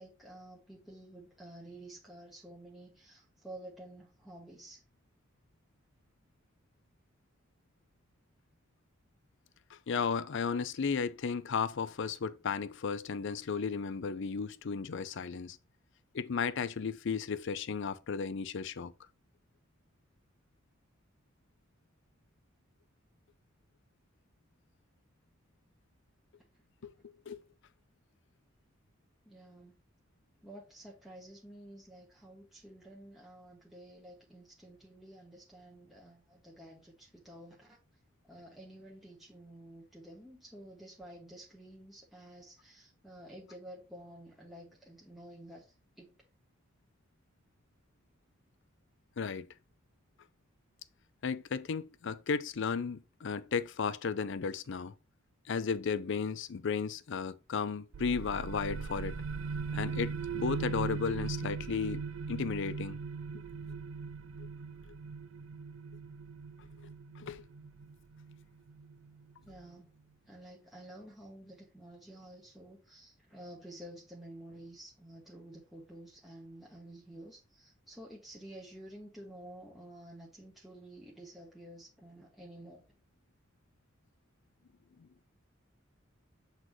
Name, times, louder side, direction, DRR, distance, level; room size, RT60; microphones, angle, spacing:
voice 1, 0.0-4.8 29.2-29.8 30.4-37.8 38.2-46.1 69.4-69.9 70.3-82.8, right 1 dB, ahead, 1.2 m, -51 dB
voice 2, 9.7-15.6 16.1-18.9 26.8-26.9 27.3-27.4 49.2-49.5 51.2-54.9 55.5-59.2 59.7-63.0 64.4-64.5 67.2-67.4 85.0-85.1, left 5 dB, 65° left, 0.5 m, -34 dB
sound 1, 57.9-69.3, right 5 dB, 80° right, 0.5 m, -39 dB
7.7 x 4.0 x 3.1 m
head